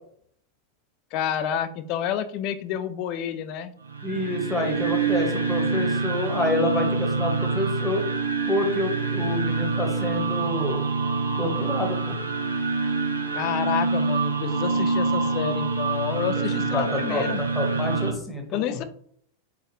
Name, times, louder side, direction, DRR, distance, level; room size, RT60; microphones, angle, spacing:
voice 1, 1.1-3.7 13.3-17.4 18.5-18.8, left 9 dB, 40° left, 11 dB, 0.3 m, -29 dB
sound 1, 3.8-18.1, right 4 dB, 75° right, 0.4 m, -26 dB
voice 2, 4.0-8.0 8.5-10.9 11.4-12.2 16.7-18.8, left 2 dB, 10° left, 1 dB, 0.9 m, -28 dB
3.5 x 2.3 x 3.0 m, 0.63 s
figure-of-eight pair, 90°, 0 cm